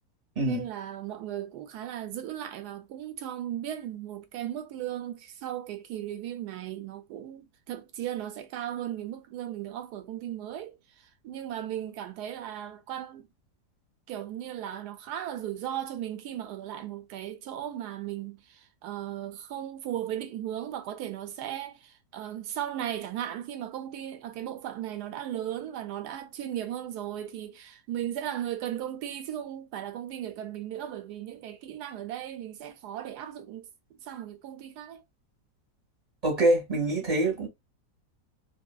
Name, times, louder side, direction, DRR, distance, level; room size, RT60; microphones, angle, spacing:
voice 1, 0.4-13.3 14.1-33.7 34.0-35.0, right 11 dB, 70° right, 1.0 m, -36 dB
voice 2, 36.2-37.5, right 2 dB, 25° right, 1.1 m, -25 dB
2.7 x 2.7 x 2.3 m
omnidirectional pair, 1.9 m